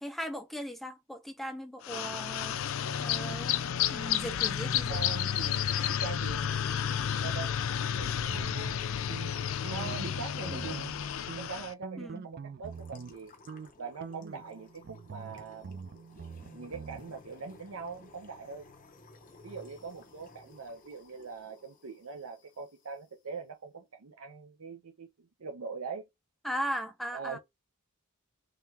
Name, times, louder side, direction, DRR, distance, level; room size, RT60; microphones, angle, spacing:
voice 1, 0.0-2.6 3.0-3.6 3.9-5.0 10.5-10.7 12.0-12.3 26.4-27.4, equal, ahead, 0.6 m, -38 dB
sound 1, 1.8-11.7, left 9 dB, 65° left, 0.4 m, -31 dB
voice 2, 4.6-7.5 8.0-8.9 9.7-10.8 11.4-13.3 13.8-15.9 16.5-18.7 19.4-26.0 27.1-27.4, right 5 dB, 75° right, 0.7 m, -42 dB
sound 2, 8.3-10.1 10.4-11.0 11.3-13.2 13.5-13.7 14.0-17.0, right 5 dB, 45° right, 0.3 m, -44 dB
sound 3, 12.6-23.1, left 2 dB, 35° left, 0.8 m, -56 dB
3.7 x 3.2 x 2.8 m
head